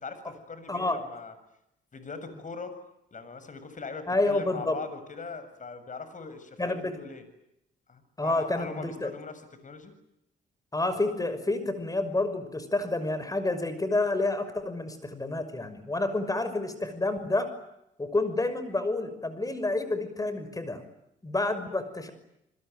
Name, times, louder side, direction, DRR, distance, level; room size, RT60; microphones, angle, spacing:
voice 1, 0.0-1.3 1.9-2.8 3.1-7.3 7.9-9.9, left 4 dB, 40° left, 10 dB, 7.3 m, -41 dB
voice 2, 0.7-1.0 4.1-4.8 6.6-7.0 8.2-9.1 10.7-17.5 18.0-20.8 21.2-22.1, left 2 dB, 15° left, 12 dB, 6.0 m, -29 dB
29.5 x 21.5 x 9.4 m, 0.82 s
cardioid pair, 90°, 20 cm